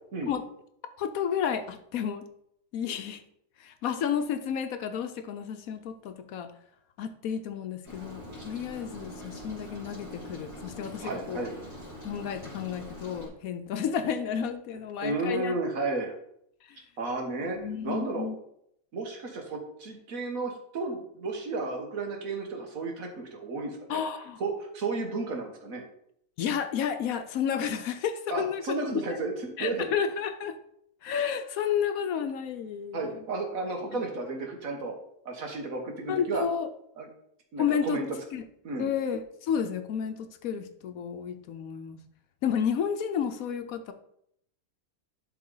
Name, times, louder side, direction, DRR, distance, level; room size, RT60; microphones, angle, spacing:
voice 1, 1.0-2.2 2.7-3.2 3.6-6.5 7.0-11.5 12.0-15.6 16.7-16.8 17.5-18.4 23.9-24.4 26.4-28.6 29.6-30.6 31.0-33.2 33.9-34.0 36.1-36.7 37.6-38.0 38.3-38.4 38.8-42.0 42.4-43.9, left 8 dB, 70° left, 8 dB, 1.1 m, -31 dB
Rain, 7.8-13.3, equal, 20° right, 2.9 m, -43 dB
voice 2, 11.0-11.5 15.0-16.1 17.0-17.6 17.8-18.2 18.9-24.0 24.4-25.8 28.3-29.9 32.9-34.9 35.2-36.5 37.0-37.1 37.5-38.1 38.6-38.9, right 3 dB, 65° right, 2 dB, 1.7 m, -33 dB
11.5 x 3.8 x 3.8 m, 0.73 s
omnidirectional pair, 1.6 m